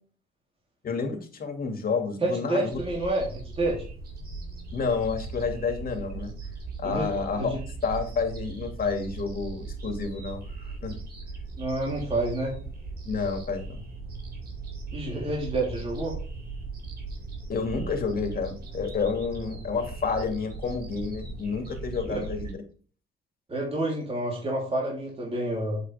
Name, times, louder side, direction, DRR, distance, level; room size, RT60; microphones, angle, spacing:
voice 1, 0.8-2.8 4.7-6.3 6.8-7.5 7.8-11.0 13.0-13.8 17.5-22.6, left 5 dB, 45° left, 4 dB, 2.4 m, -30 dB
voice 2, 2.2-3.8 6.8-7.6 11.6-12.6 14.9-16.2 23.5-25.8, right 1 dB, 30° right, -4 dB, 3.5 m, -29 dB
sound 1, 2.7-22.5, right 3 dB, 50° right, 3.8 m, -38 dB
8.1 x 8.0 x 3.5 m, 0.40 s
cardioid pair, 90°, 20 cm